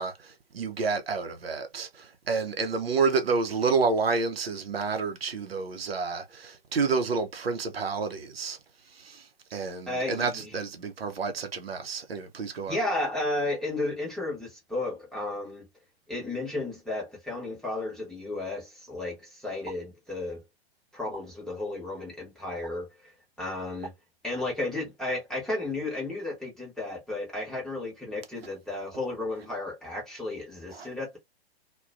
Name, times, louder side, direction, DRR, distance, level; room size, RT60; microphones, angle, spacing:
voice 1, 0.0-8.6 9.0-9.2 9.5-12.8 30.7-30.9, right 4 dB, 70° right, 0.6 m, -29 dB
voice 2, 9.9-10.5 12.7-15.7 16.1-20.4 20.9-23.9 24.2-31.2, left 2 dB, ahead, 0.8 m, -33 dB
sound 1, 19.6-19.8 21.1-21.3 22.6-22.7 23.8-24.0, right 5 dB, 15° right, 0.3 m, -42 dB
2.3 x 2.2 x 2.4 m
figure-of-eight pair, 115°, 31 cm